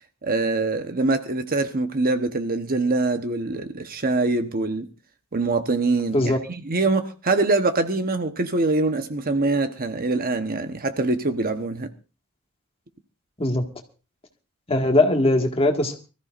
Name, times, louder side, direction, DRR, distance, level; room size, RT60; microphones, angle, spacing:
voice 1, 0.2-4.9 5.3-6.3 6.6-11.9, right 3 dB, 40° right, 1.1 m, -24 dB
voice 2, 14.7-16.0, left 2 dB, 25° left, 1.9 m, -20 dB
25.0 x 14.5 x 2.6 m
head